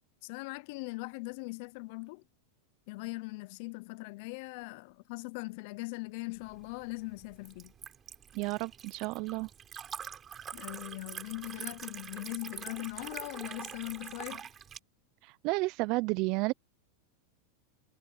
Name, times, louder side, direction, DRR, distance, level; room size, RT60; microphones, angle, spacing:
voice 1, 0.2-2.2 2.9-7.7 10.5-14.5, left 26 dB, 60° left, 0.5 m, -40 dB
Liquid, 6.4-14.8, right 8 dB, 30° right, 4.6 m, -45 dB
voice 2, 8.3-9.5 15.2-16.5, right 24 dB, 50° right, 0.6 m, -31 dB
hypercardioid pair, 110°, 0 cm